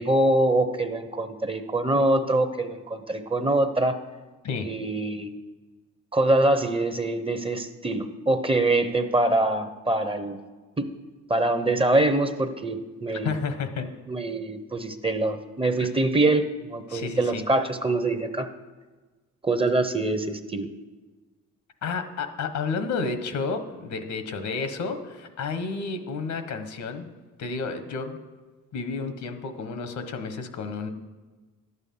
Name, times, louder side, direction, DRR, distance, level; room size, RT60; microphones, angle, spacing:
voice 1, 0.0-4.0 4.6-5.3 6.1-10.4 10.8-10.9 11.3-13.3 14.1-18.5 19.4-20.7, right 2 dB, 20° right, 8 dB, 0.9 m, -24 dB
voice 2, 13.2-13.9 15.8-15.9 16.9-17.4 21.8-27.1 27.4-28.2 28.7-30.9, left 4 dB, 70° left, 8 dB, 1.3 m, -31 dB
11.0 x 8.2 x 5.6 m, 1.3 s
cardioid pair, 90°, 30 cm